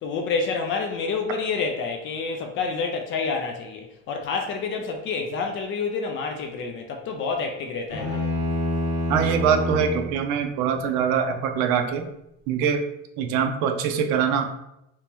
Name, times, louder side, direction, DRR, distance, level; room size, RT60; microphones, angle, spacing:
voice 1, 0.0-8.2, left 4 dB, 40° left, 3 dB, 0.4 m, -28 dB
sound 1, 7.9-10.2, left 1 dB, 30° right, 1.3 m, -26 dB
voice 2, 9.1-12.1 12.5-12.8 13.2-14.4, right 7 dB, 70° right, 5 dB, 0.6 m, -23 dB
3.0 x 2.9 x 3.4 m, 0.84 s
cardioid pair, 165°, 30 cm